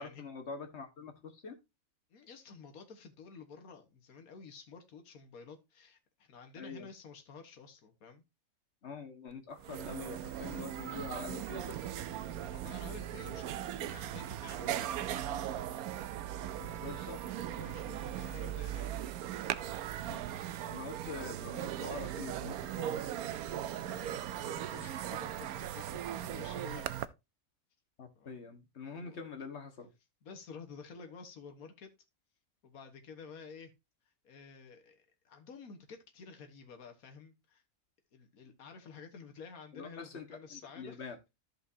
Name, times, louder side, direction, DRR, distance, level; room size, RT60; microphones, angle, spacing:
voice 1, 0.0-1.6 6.6-6.9 8.8-11.9 16.6-17.2 20.1-20.2 20.7-23.1 28.0-29.9 39.7-40.2 40.5-41.2, left 4 dB, 50° left, 1.8 m, -45 dB
voice 2, 2.1-8.2 12.2-15.5 17.5-19.0 23.8-26.9 28.1-28.5 28.9-29.2 30.2-31.9 32.6-33.7 34.2-37.6 38.1-41.0, left 5 dB, 75° left, 1.8 m, -51 dB
sound 1, 9.3-9.4 9.6-27.1, right 11 dB, 85° right, 1.1 m, -38 dB
13.5 x 5.1 x 2.7 m
omnidirectional pair, 1.5 m